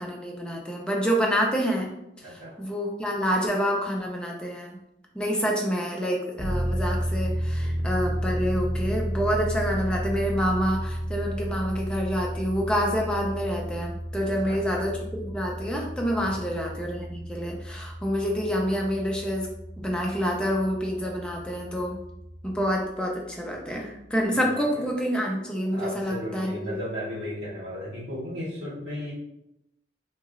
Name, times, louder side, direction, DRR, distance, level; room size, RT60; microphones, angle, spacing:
voice 1, 0.0-1.9 2.3-4.8 5.1-19.5 19.8-22.0 22.4-26.8, equal, 5° left, -1 dB, 0.4 m, -27 dB
voice 2, 2.2-2.5 7.6-7.8 14.4-14.8 16.2-16.5 24.3-24.4 24.7-24.8 25.7-29.1, equal, 70° right, -8 dB, 1.4 m, -35 dB
sound 1, 6.4-22.7, equal, 50° left, 0.8 m, -32 dB
2.9 x 2.8 x 2.4 m, 0.84 s
head